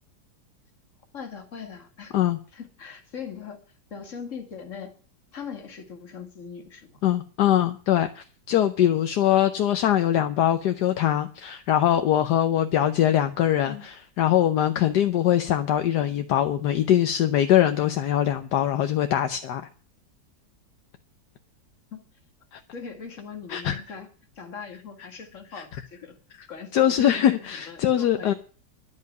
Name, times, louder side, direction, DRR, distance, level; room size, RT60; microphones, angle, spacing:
voice 1, 1.1-2.2 2.5-3.6 3.9-4.9 5.3-7.0 13.7-13.8 21.9-22.0 22.7-24.1 24.4-26.2 26.5-28.3, left 6 dB, 45° left, 5 dB, 2.2 m, -40 dB
voice 2, 7.0-19.7 22.5-22.6 23.5-23.8 25.5-25.6 26.4-26.5 26.7-28.3, left 11 dB, 70° left, 8 dB, 1.4 m, -22 dB
11.5 x 7.6 x 9.3 m, 0.40 s
omnidirectional pair, 1.9 m